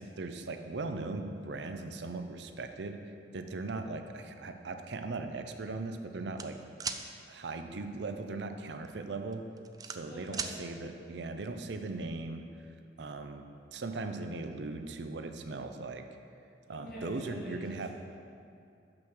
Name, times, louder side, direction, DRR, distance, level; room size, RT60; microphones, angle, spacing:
voice 1, 0.0-3.0 3.3-6.6 7.3-9.4 9.8-12.4 13.0-13.5 13.7-16.0 16.7-17.9, right 3 dB, 70° right, 6 dB, 0.5 m, -39 dB
sound 1, 6.4-7.0 8.7-8.9 9.3-10.5, right 6 dB, 20° right, 0.3 m, -37 dB
voice 2, 10.1-10.5 16.7-17.9, equal, 55° left, -6 dB, 2.2 m, -45 dB
6.2 x 6.1 x 6.4 m, 2.5 s
head